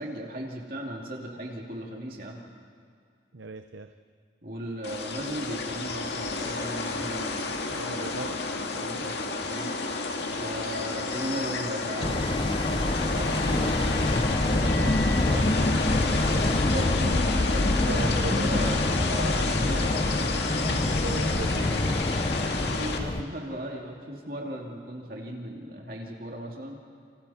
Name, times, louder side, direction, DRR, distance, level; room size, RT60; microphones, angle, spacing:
voice 1, 0.0-2.4 4.4-7.8 8.7-9.7 10.4-15.7 16.3-19.9 22.4-26.8, equal, 50° right, -1 dB, 2.7 m, -37 dB
voice 2, 3.3-3.9 7.7-8.4 10.3-10.5 17.9-18.7 20.7-22.0, right 3 dB, 85° right, 8 dB, 0.8 m, -37 dB
sound 1, 4.8-23.0, left 3 dB, 65° left, 2.0 m, -31 dB
sound 2, 9.3-12.7 13.2-14.2 14.6-15.2 15.9-16.0 16.3-19.1, left 3 dB, 85° left, 4.9 m, -47 dB
sound 3, 12.0-23.2, left 2 dB, 25° left, 0.5 m, -26 dB
29.0 x 26.5 x 4.4 m, 2.2 s
head